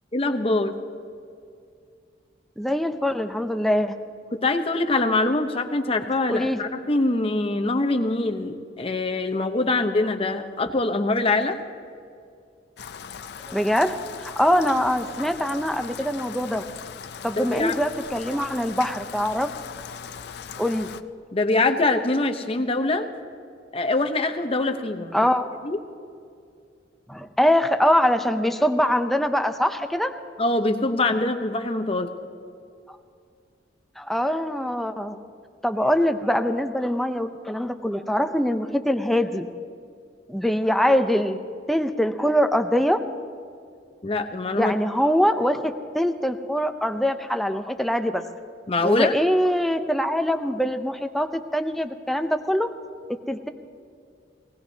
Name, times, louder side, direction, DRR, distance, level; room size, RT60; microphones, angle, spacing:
voice 1, 0.1-0.7 4.3-11.6 17.4-17.7 21.3-23.1 23.7-25.2 25.6-25.8 30.4-32.1 44.0-44.7 48.7-49.1, left 2 dB, 30° left, 6 dB, 0.8 m, -24 dB
voice 2, 2.6-3.9 6.3-6.6 13.5-16.6 17.2-19.5 20.6-20.9 25.1-25.5 27.1-30.1 32.9-33.0 34.0-35.2 35.6-39.5 40.3-41.4 41.7-43.0 44.6-48.2 48.8-52.7 53.1-53.5, equal, ahead, 7 dB, 0.5 m, -23 dB
Rain, 12.8-21.0, left 7 dB, 60° left, 0.4 m, -39 dB
19.5 x 18.0 x 2.8 m, 2.3 s
head